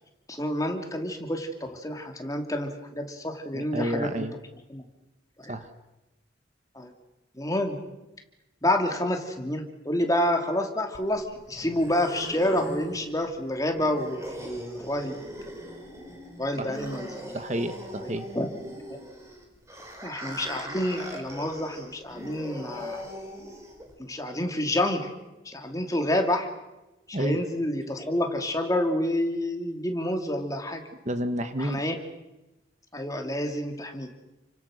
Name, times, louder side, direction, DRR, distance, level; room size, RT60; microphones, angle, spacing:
voice 1, 0.3-4.3 4.7-4.8 5.4-5.6 6.7-6.9 7.3-7.8 8.6-15.2 16.4-17.4 18.0-18.5 20.0-23.1 24.0-25.1 25.4-26.5 27.1-30.8 31.6-32.0 32.9-34.1, left 1 dB, 20° left, 4 dB, 2.8 m, -28 dB
voice 2, 3.5-4.3 5.5-5.7 16.6-16.8 17.3-18.3 27.1-27.4 31.0-31.8, right 1 dB, 40° right, 9 dB, 1.4 m, -30 dB
sound 1, 10.9-23.9, equal, 15° right, 4.8 m, -40 dB
30.0 x 25.0 x 6.5 m, 1.0 s
head